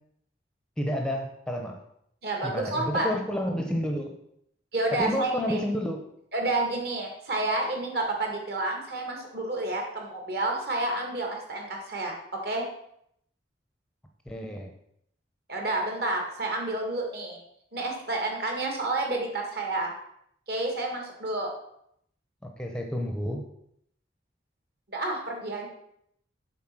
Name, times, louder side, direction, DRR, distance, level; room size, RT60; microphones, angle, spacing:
voice 1, 0.8-1.8 2.4-4.2 4.9-6.0 14.3-14.7 22.4-23.4, equal, 5° left, 3 dB, 0.7 m, -30 dB
voice 2, 2.2-3.1 4.7-5.6 6.3-12.2 12.4-12.7 15.5-17.4 17.7-19.9 20.5-21.5 24.9-25.7, right 2 dB, 55° right, 1 dB, 1.9 m, -30 dB
7.4 x 4.2 x 6.0 m, 0.73 s
head